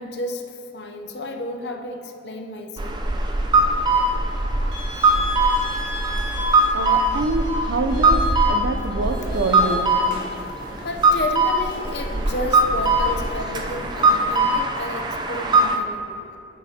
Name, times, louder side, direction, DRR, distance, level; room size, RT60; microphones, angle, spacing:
voice 1, 0.0-3.1 10.8-16.3, left 1 dB, 65° left, 4 dB, 0.7 m, -32 dB
sound 1, 2.8-15.8, right 2 dB, 25° right, 0.4 m, -21 dB
sound 2, 4.7-9.7, left 1 dB, 70° right, 2.1 m, -36 dB
voice 2, 6.7-9.9, right 2 dB, 85° right, 7 dB, 0.6 m, -26 dB
sound 3, 9.0-14.3, equal, 50° right, 2.0 m, -37 dB
10.5 x 8.4 x 2.8 m, 2.7 s
head